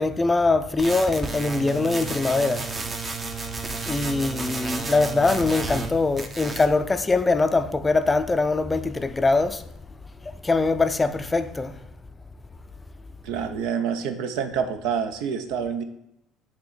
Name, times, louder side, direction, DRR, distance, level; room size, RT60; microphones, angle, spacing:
voice 1, 0.0-2.7 3.9-9.6 10.2-11.8, left 3 dB, 20° left, 0.4 m, -22 dB
sound 1, 0.8-5.9 6.2-6.7, right 4 dB, 30° right, 0.8 m, -32 dB
voice 2, 13.2-15.8, right 7 dB, 75° right, 0.6 m, -27 dB
7.8 x 2.9 x 4.2 m
hypercardioid pair, 70°, 0 cm